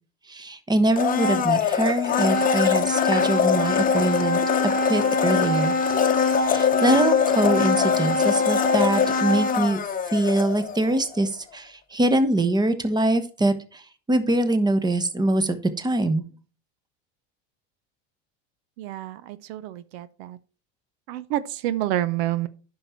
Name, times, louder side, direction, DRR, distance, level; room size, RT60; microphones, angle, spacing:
voice 1, 0.3-5.8 6.4-9.8 10.1-16.2, right 1 dB, 15° right, 1.1 m, -23 dB
Domestic sounds home sounds, 0.9-10.9 11.2-11.3, left 5 dB, 25° left, 1.0 m, -22 dB
voice 2, 18.8-20.4 21.1-22.5, right 13 dB, 75° right, 0.7 m, -28 dB
9.9 x 5.8 x 4.4 m
supercardioid pair, 105°, 31 cm